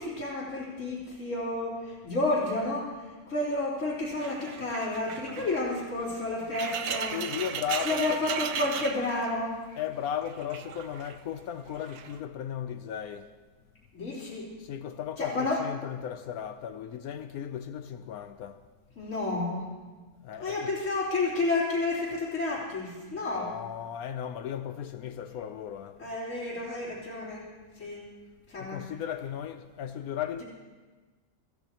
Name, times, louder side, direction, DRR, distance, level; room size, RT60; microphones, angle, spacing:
voice 1, 0.0-2.9 3.3-7.2 7.8-9.6 13.9-14.5 15.2-15.6 19.0-19.7 20.4-23.5 26.0-27.5 27.8-28.1 28.5-28.8, left 2 dB, 55° left, 3.9 m, -30 dB
sound 1, 4.2-9.8 10.0-11.2 11.8-12.2, right 8 dB, 85° right, 1.4 m, -36 dB
voice 2, 6.9-8.3 9.7-13.3 14.6-18.6 20.2-20.8 23.4-26.0 28.6-30.4, left 9 dB, 75° left, 1.1 m, -36 dB
26.0 x 15.5 x 3.0 m
omnidirectional pair, 1.6 m